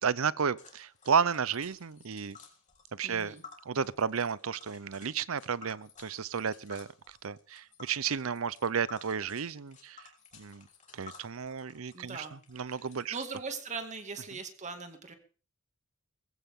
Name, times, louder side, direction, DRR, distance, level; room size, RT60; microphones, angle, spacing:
voice 1, 0.0-2.4 2.9-3.4 3.7-10.7 10.9-13.2, right 6 dB, 90° right, 0.7 m, -32 dB
Tick, 0.6-13.2, left 5 dB, 35° left, 3.7 m, -54 dB
voice 2, 3.0-3.4 11.9-12.4 12.6-15.1, right 4 dB, 35° right, 2.2 m, -40 dB
20.5 x 15.5 x 3.7 m
head